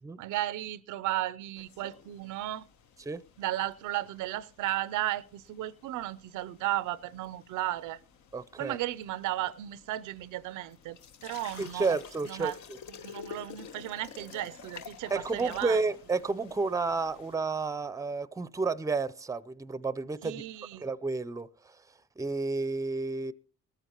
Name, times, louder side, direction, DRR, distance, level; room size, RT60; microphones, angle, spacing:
voice 1, 0.2-2.7 3.4-8.0 8.6-12.0 12.3-12.6 12.9-15.8 20.2-20.9, right 14 dB, 85° right, 0.6 m, -35 dB
sound 1, 1.6-17.3, left 7 dB, 75° left, 1.1 m, -51 dB
voice 2, 8.3-8.8 11.6-12.5 15.1-20.4 20.8-21.5 22.2-23.3, right 4 dB, 10° right, 0.5 m, -31 dB
19.0 x 13.5 x 2.9 m
cardioid pair, 90°, 30 cm